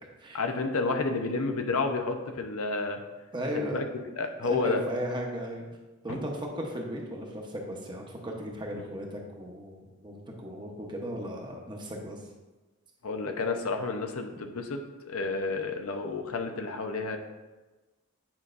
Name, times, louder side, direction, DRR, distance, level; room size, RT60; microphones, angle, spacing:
voice 1, 0.3-3.0 3.5-3.8 4.2-4.8 6.1-6.2 13.0-17.2, left 3 dB, 80° left, 5 dB, 0.7 m, -30 dB
voice 2, 3.3-3.8 4.4-5.6 6.0-12.2, equal, 20° right, 0 dB, 0.9 m, -36 dB
8.8 x 5.4 x 2.5 m, 1.2 s
head